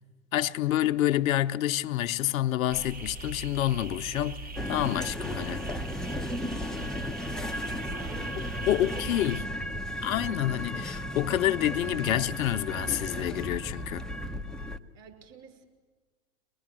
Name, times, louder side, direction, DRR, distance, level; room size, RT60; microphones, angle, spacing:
voice 1, 0.3-5.7 8.7-9.5 10.0-14.0, left 13 dB, 70° left, 0.8 m, -28 dB
sound 1, 2.7-9.4, right 2 dB, 20° right, 1.1 m, -41 dB
sound 2, 4.6-14.8, equal, ahead, 0.7 m, -35 dB
voice 2, 7.9-9.4 9.7-10.0 14.9-15.6, right 7 dB, 35° right, 4.8 m, -51 dB
24.5 x 20.0 x 7.5 m
hypercardioid pair, 105°, 42 cm